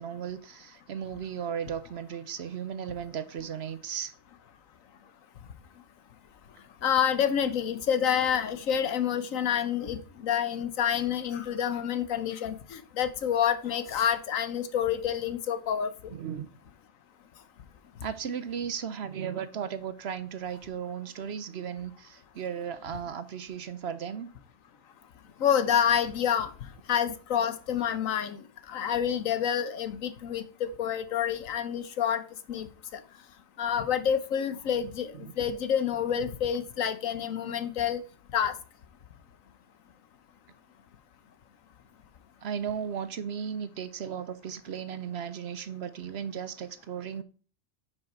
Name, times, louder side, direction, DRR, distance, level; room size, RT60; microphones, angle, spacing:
voice 1, 0.0-4.1 16.1-16.5 18.0-24.3 35.1-35.3 42.4-47.2, right 8 dB, 60° right, 0.8 m, -36 dB
voice 2, 6.8-15.9 25.4-26.5 26.9-28.4 28.7-32.2 32.5-33.0 33.6-35.1 35.4-38.0 38.3-38.5, left 9 dB, 80° left, 1.3 m, -28 dB
9.8 x 6.0 x 4.4 m
omnidirectional pair, 1.4 m